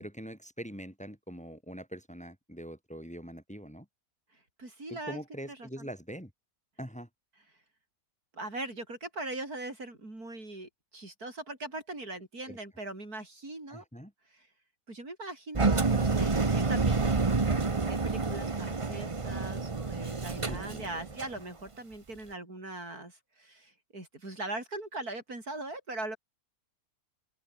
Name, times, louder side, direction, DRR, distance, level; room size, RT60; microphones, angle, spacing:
voice 1, 0.0-3.9 4.9-6.3 6.8-7.1 12.5-12.6 13.7-14.1 20.5-20.9, equal, 5° left, 3.5 m, -43 dB
voice 2, 4.6-5.2 5.5-5.9 8.3-13.8 14.3-14.5 14.9-17.2 17.7-26.2, right 2 dB, 85° right, 7.2 m, -40 dB
Engine, 15.5-21.4, right 4 dB, 25° right, 1.0 m, -28 dB
open air
omnidirectional pair, 1.6 m